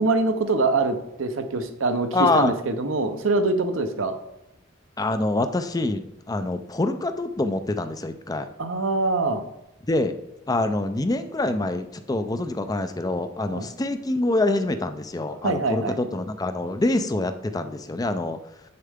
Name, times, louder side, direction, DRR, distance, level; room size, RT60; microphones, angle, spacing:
voice 1, 0.0-2.1 2.3-4.1 8.6-9.4 13.5-13.7 15.4-16.0, right 3 dB, 80° right, 8 dB, 0.8 m, -24 dB
voice 2, 2.1-2.5 5.0-8.5 9.9-10.1 10.5-18.4, left 2 dB, 20° left, 9 dB, 0.4 m, -25 dB
7.6 x 6.7 x 3.6 m, 0.82 s
head